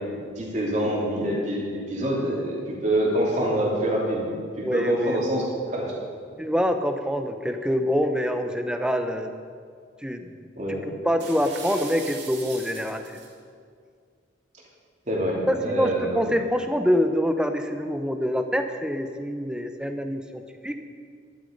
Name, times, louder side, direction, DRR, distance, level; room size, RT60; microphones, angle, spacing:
voice 1, 0.0-5.9 10.6-10.9 15.1-16.3, right 1 dB, 40° right, -4 dB, 3.0 m, -26 dB
voice 2, 4.6-5.2 6.4-9.3 10.0-10.3 10.7-10.8 11.0-13.0 15.5-20.8, equal, 5° right, 7 dB, 0.7 m, -25 dB
sound 1, 11.2-13.3, right 4 dB, 75° right, 2.4 m, -40 dB
12.0 x 11.5 x 5.2 m, 2.2 s
head